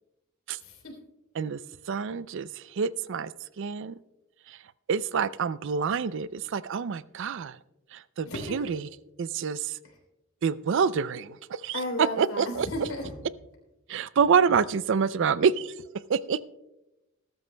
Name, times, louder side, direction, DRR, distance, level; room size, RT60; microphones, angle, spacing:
voice 1, 0.6-0.9 8.3-8.6 9.8-9.9 11.7-13.1, left 1 dB, 75° left, 0 dB, 3.6 m, -34 dB
voice 2, 1.9-3.3 3.6-3.9 4.5-4.6 4.9-7.6 7.9-8.9 9.2-9.8 10.4-12.7 13.9-15.7 16.1-16.4, right 6 dB, 60° right, 17 dB, 0.4 m, -27 dB
20.0 x 12.5 x 2.2 m, 0.96 s
head